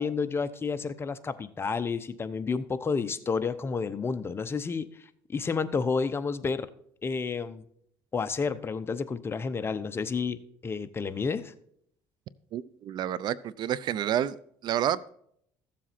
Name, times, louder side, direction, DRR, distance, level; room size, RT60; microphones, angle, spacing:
voice 1, 0.0-4.9 5.3-6.7 7.0-7.6 8.1-11.5, left 5 dB, 25° left, 12 dB, 0.9 m, -30 dB
voice 2, 12.5-14.4 14.6-15.1, right 10 dB, 55° right, 19 dB, 0.6 m, -29 dB
14.5 x 7.5 x 4.3 m, 0.67 s
cardioid pair, 100°, 9 cm